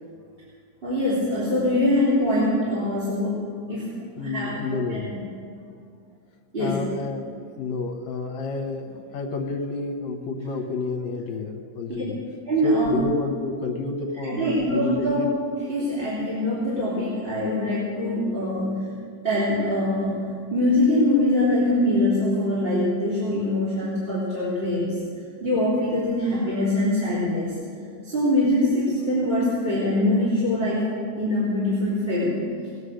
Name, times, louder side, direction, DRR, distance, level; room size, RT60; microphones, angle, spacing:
voice 1, 0.8-4.0 4.2-4.6 4.9-5.0 6.5-6.8 12.5-12.9 14.2-15.3 15.7-18.9 19.2-20.2 20.5-25.0 25.4-27.5 28.0-30.8 31.2-32.3, left 1 dB, 20° right, -9 dB, 3.1 m, -23 dB
voice 2, 4.2-5.1 6.6-12.2 12.6-15.3, left 3 dB, 70° left, 5 dB, 2.1 m, -30 dB
19.5 x 8.1 x 6.4 m, 2.2 s
omnidirectional pair, 3.6 m